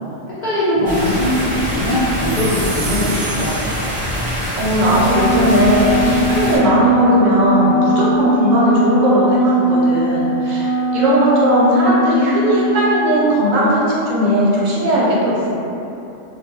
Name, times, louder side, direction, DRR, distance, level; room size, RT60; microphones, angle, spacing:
voice 1, 0.4-3.5, left 1 dB, 70° left, -11 dB, 0.4 m, -20 dB
sound 1, 0.8-6.6, equal, 10° right, 0.6 m, -24 dB
sound 2, 2.2-4.7, right 3 dB, 65° right, 0.5 m, -32 dB
voice 2, 4.2-15.6, equal, 85° right, -6 dB, 1.0 m, -17 dB
Wind instrument woodwind instrument, 4.9-13.0, equal, 55° left, 0.8 m, -19 dB
2.3 x 2.2 x 2.8 m, 2.8 s
omnidirectional pair, 1.3 m